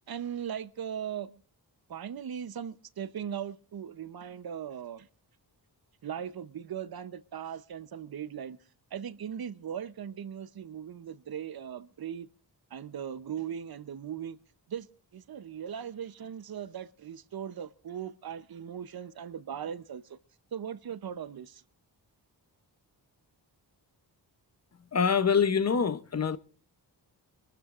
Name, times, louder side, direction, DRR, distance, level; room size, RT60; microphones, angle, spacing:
voice 1, 0.1-1.4 1.9-5.1 6.0-8.6 8.9-12.3 12.7-14.4 14.7-14.9 15.1-20.2 20.5-21.6, right 8 dB, 60° right, 0.7 m, -39 dB
voice 2, 24.9-26.4, left 6 dB, 40° left, 0.7 m, -25 dB
25.0 x 13.0 x 2.4 m
wide cardioid pair, 155°, 41 cm